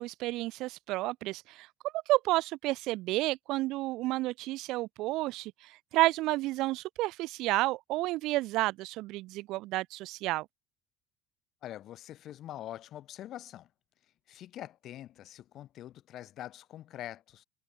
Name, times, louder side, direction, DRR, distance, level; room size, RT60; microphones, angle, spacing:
voice 1, 0.0-1.7 1.9-10.5, right 19 dB, 65° right, 0.5 m, -31 dB
voice 2, 11.6-13.7 14.3-17.4, left 12 dB, 50° left, 1.7 m, -44 dB
cardioid pair, 125°, 0 cm